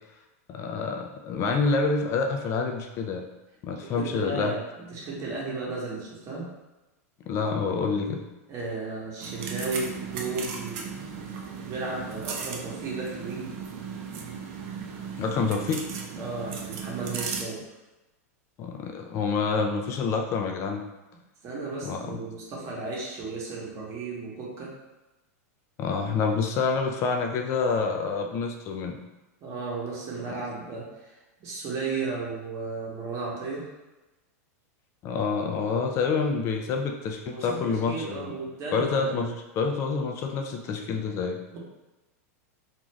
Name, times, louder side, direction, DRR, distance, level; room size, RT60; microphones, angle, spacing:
voice 1, 0.5-3.3 3.6-4.5 7.3-8.2 15.2-15.8 18.6-20.8 21.8-22.2 25.8-29.0 30.3-30.4 35.0-38.3 38.7-41.6, left 4 dB, 35° left, 3 dB, 0.3 m, -27 dB
voice 2, 3.8-4.6 4.9-6.5 8.5-10.9 11.6-13.5 16.1-17.6 21.4-24.7 29.4-33.7 37.2-39.3, right 3 dB, 35° right, -4 dB, 1.0 m, -34 dB
sound 1, 9.2-17.4, right 6 dB, 50° right, 0.4 m, -36 dB
2.5 x 2.4 x 3.1 m, 1.0 s
hypercardioid pair, 120°, 8 cm